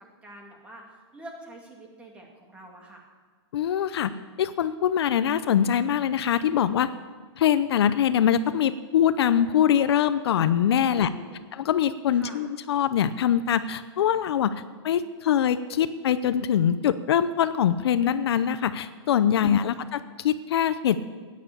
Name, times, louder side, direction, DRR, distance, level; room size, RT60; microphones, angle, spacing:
voice 1, 0.2-0.8 1.1-3.1 10.9-11.4 12.1-12.4 19.3-19.8, right 1 dB, 10° right, 0 dB, 2.1 m, -46 dB
voice 2, 3.5-4.1 4.4-6.9 7.4-11.1 11.5-21.0, left 9 dB, 65° left, 13 dB, 0.7 m, -23 dB
14.0 x 9.5 x 8.5 m, 1.5 s
hypercardioid pair, 170°, 14 cm